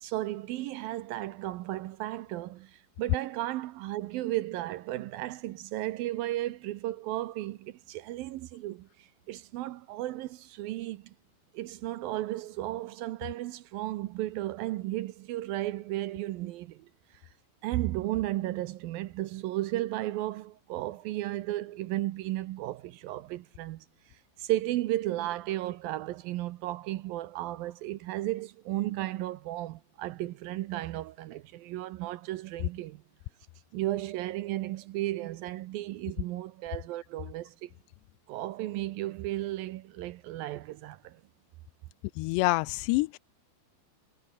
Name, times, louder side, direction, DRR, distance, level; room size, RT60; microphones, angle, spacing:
voice 1, 0.0-11.2 11.5-17.2 17.6-33.0 33.7-37.7 38.3-41.2, right 15 dB, 75° right, 2.2 m, -34 dB
voice 2, 42.2-43.2, left 23 dB, 85° left, 2.8 m, -27 dB
omnidirectional pair, 4.9 m